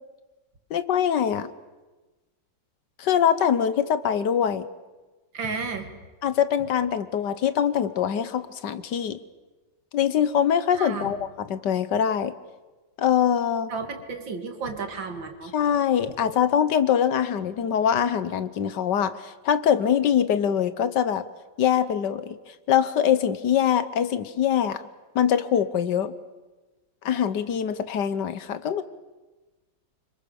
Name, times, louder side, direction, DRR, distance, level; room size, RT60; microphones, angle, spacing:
voice 1, 0.7-1.5 3.0-4.7 6.2-9.2 9.9-12.3 13.0-13.7 15.5-21.3 21.6-22.4 22.7-24.9 25.1-26.1 27.0-28.8, left 9 dB, 70° left, 13 dB, 1.6 m, -23 dB
voice 2, 5.3-5.9 10.7-11.1 13.7-15.5, right 4 dB, 90° right, 5 dB, 2.9 m, -33 dB
26.5 x 25.5 x 7.0 m, 1.2 s
omnidirectional pair, 2.0 m